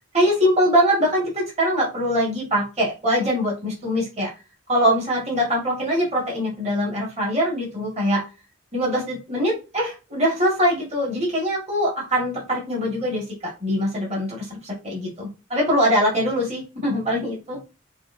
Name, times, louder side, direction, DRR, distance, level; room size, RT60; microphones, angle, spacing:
voice 1, 0.1-4.3 4.7-8.2 8.7-17.6, equal, 30° right, -3 dB, 2.0 m, -23 dB
6.6 x 2.6 x 2.7 m, 0.29 s
head